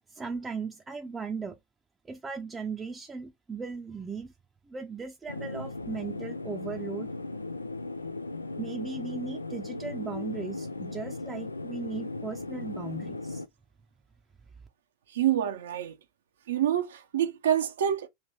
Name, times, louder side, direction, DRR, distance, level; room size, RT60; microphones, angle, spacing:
voice 1, 0.1-1.6 2.0-4.3 4.7-7.1 8.6-13.4, right 5 dB, 15° right, 0.6 m, -37 dB
sound 1, 5.3-13.5, left 2 dB, 85° left, 0.4 m, -37 dB
voice 2, 15.1-15.9 16.5-18.1, right 10 dB, 65° right, 0.7 m, -27 dB
3.4 x 2.9 x 4.2 m
figure-of-eight pair, 85°, 0 cm